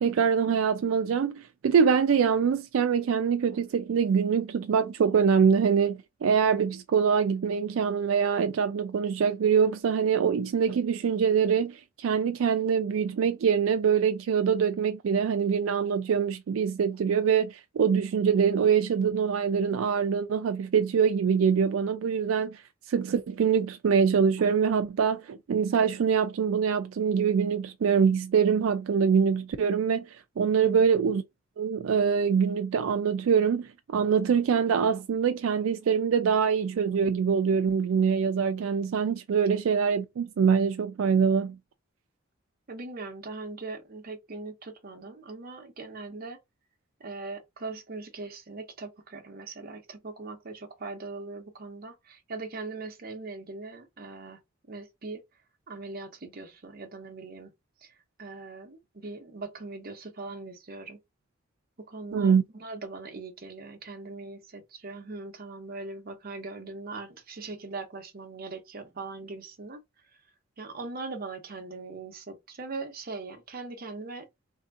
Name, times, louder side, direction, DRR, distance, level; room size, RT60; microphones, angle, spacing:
voice 1, 0.0-22.6 22.9-30.1 30.4-31.2 31.6-41.6 62.1-62.4, right 6 dB, 85° right, 0.4 m, -24 dB
voice 2, 42.7-46.4 47.0-54.4 54.7-55.2 55.7-57.5 58.2-61.0 61.8-62.3 62.6-69.8 70.6-74.3, right 3 dB, 50° right, 0.8 m, -40 dB
3.4 x 2.8 x 2.5 m
head